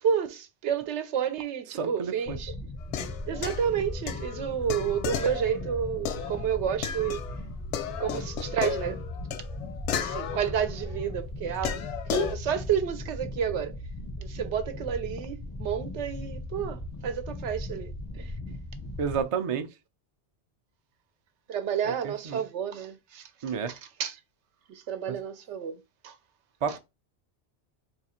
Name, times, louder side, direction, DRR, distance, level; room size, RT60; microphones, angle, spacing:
voice 1, 0.0-2.5 3.3-7.2 8.0-9.0 10.0-11.8 12.1-13.8 14.2-17.9 18.2-18.3 21.5-23.2 23.7-24.2 24.7-26.1 26.7-26.8, right 8 dB, 80° right, 0.9 m, -30 dB
voice 2, 1.7-2.4 19.0-19.7 21.8-22.4 23.4-23.7 25.1-25.2 26.6-26.8, right 6 dB, 50° right, 0.4 m, -31 dB
sound 1, 2.3-19.2, left 2 dB, 5° left, 0.5 m, -38 dB
sound 2, 2.8-7.4 7.7-11.0 11.6-12.4, left 8 dB, 80° left, 0.9 m, -34 dB
3.1 x 2.3 x 4.2 m
omnidirectional pair, 1.2 m